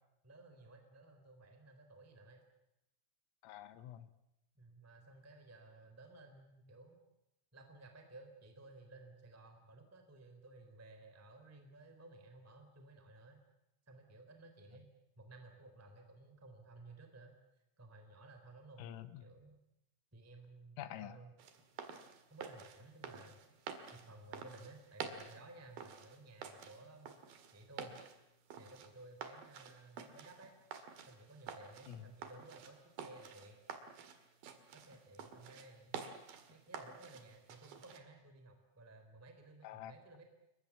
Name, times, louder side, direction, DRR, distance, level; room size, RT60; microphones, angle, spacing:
voice 1, 0.2-2.4 4.5-7.0 7.5-13.4 13.9-14.9 15.2-17.4 17.8-18.9 19.2-19.6 20.1-21.3 22.3-23.4 23.9-27.1 27.5-28.0 28.6-30.5 31.1-33.6 34.7-35.9 36.5-40.2, right 2 dB, 5° right, 5 dB, 2.4 m, -56 dB
voice 2, 3.4-4.1 18.8-19.3 20.8-21.2 31.9-32.1 39.6-39.9, left 12 dB, 80° left, 13 dB, 3.8 m, -47 dB
sound 1, 21.4-38.0, right 7 dB, 55° right, 3.3 m, -50 dB
28.0 x 22.5 x 7.3 m, 0.86 s
omnidirectional pair, 5.9 m